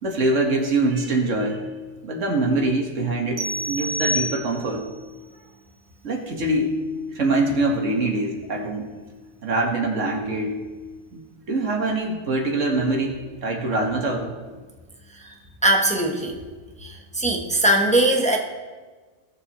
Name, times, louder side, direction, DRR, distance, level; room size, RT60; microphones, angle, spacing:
voice 1, 0.0-1.6 2.0-4.9 6.0-6.8 7.1-8.9 9.4-10.6 11.1-11.2 11.5-14.3, right 2 dB, 80° right, 1 dB, 1.9 m, -24 dB
sound 1, 3.4-4.9, equal, 60° right, 1.0 m, -28 dB
voice 2, 15.6-16.4 16.8-18.4, right 1 dB, 5° left, 1 dB, 1.0 m, -20 dB
17.5 x 7.1 x 3.1 m, 1.3 s
omnidirectional pair, 1.3 m